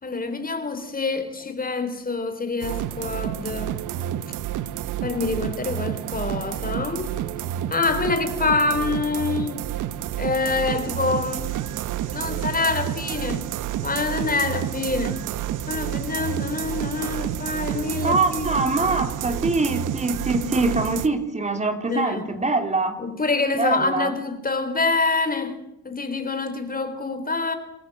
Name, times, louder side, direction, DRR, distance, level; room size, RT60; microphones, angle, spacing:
voice 1, 0.0-3.7 5.0-7.1 7.7-9.6 10.2-11.6 12.1-13.5 13.8-15.2 15.7-18.7 20.6-20.7 21.9-22.5 23.0-25.6 25.8-27.6, left 3 dB, 30° left, 3.9 m, -26 dB
sound 1, 2.6-21.1, right 11 dB, 85° right, 1.1 m, -29 dB
voice 2, 18.0-23.0 23.6-24.1, right 3 dB, 25° right, 3.5 m, -24 dB
27.5 x 14.5 x 7.9 m
cardioid pair, 90°, 30 cm